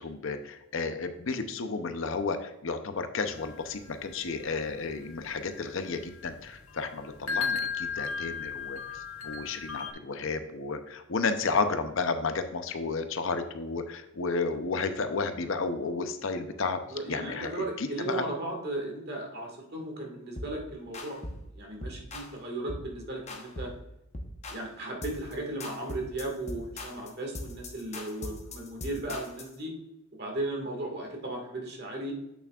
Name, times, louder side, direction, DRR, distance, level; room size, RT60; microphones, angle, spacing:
voice 1, 0.0-16.8 17.1-18.2, left 4 dB, 65° left, 8 dB, 0.6 m, -32 dB
sound 1, 3.3-9.9, left 5 dB, 80° left, 1.3 m, -37 dB
voice 2, 16.9-21.2 21.5-23.7 24.5-29.7 30.1-32.2, right 2 dB, 45° right, 0 dB, 1.8 m, -36 dB
sound 2, 20.4-20.6 20.9-21.5 21.8-22.3 22.7-22.9 23.3-23.8 24.1-24.7 25.0-25.3 25.6-29.5, left 1 dB, 30° left, 0.9 m, -40 dB
8.3 x 7.1 x 2.4 m, 0.90 s
head